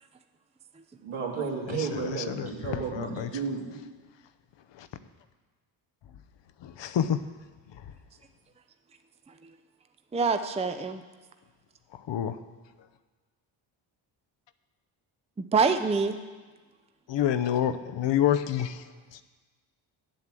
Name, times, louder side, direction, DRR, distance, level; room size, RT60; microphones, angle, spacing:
voice 1, 1.0-3.8, right 5 dB, 75° right, 2.6 m, -33 dB
voice 2, 1.7-3.3 4.7-4.9 6.6-7.2 11.9-12.4 17.1-18.8 19.1-19.2, left 10 dB, 60° left, 0.8 m, -28 dB
voice 3, 10.1-11.0 15.5-16.2, right 4 dB, 15° right, 0.6 m, -25 dB
8.0 x 7.9 x 7.5 m
cardioid pair, 70°, 49 cm